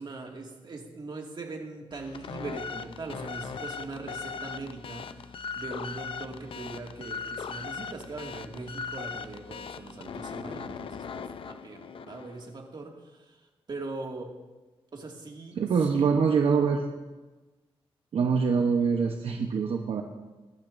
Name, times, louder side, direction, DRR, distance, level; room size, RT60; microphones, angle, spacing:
voice 1, 0.0-14.4 14.9-15.6 15.9-16.1, right 3 dB, 50° right, 1 dB, 2.1 m, -41 dB
sound 1, 1.9-12.5, left 6 dB, 60° left, 0.6 m, -39 dB
voice 2, 15.6-16.9 18.1-20.0, right 5 dB, 70° right, 3 dB, 1.0 m, -24 dB
21.0 x 12.0 x 2.6 m, 1.2 s
cardioid pair, 90°, 10 cm